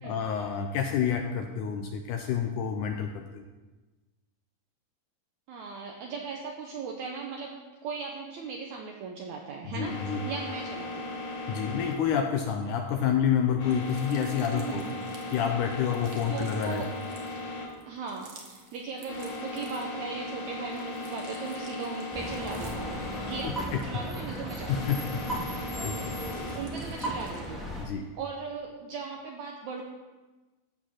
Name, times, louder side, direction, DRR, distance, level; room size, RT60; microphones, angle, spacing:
voice 1, 0.0-3.4 9.6-10.2 11.5-14.8 15.3-16.8 23.4-24.0 24.7-25.3 25.8-26.1 27.8-28.0, left 8 dB, 80° left, 4 dB, 1.9 m, -29 dB
voice 2, 5.5-7.5 7.8-11.1 14.5-15.0 16.3-16.9 17.9-23.0 23.3-24.9 26.5-27.7 28.2-29.8, right 5 dB, 70° right, 1 dB, 1.9 m, -38 dB
sound 1, 9.8-26.6, left 2 dB, 50° left, 3.2 m, -38 dB
sound 2, 13.6-20.1 20.5-25.4 25.7-27.6, right 4 dB, 55° right, 2.0 m, -54 dB
sound 3, 22.1-27.8, right 1 dB, ahead, 0.6 m, -36 dB
15.0 x 5.0 x 5.8 m, 1.2 s
omnidirectional pair, 4.0 m